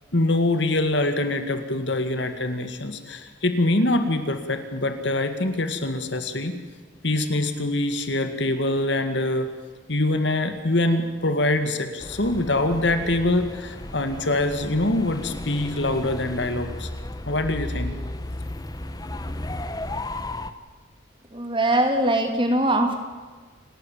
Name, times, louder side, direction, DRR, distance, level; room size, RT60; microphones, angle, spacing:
voice 1, 0.1-6.5 7.0-9.5 9.9-16.9 17.3-18.0, left 2 dB, 65° left, 8 dB, 2.1 m, -24 dB
sound 1, 12.0-20.5, left 1 dB, 20° left, 0.9 m, -34 dB
voice 2, 21.3-23.0, right 1 dB, 25° right, 5 dB, 2.7 m, -21 dB
28.0 x 13.0 x 9.1 m, 1.4 s
head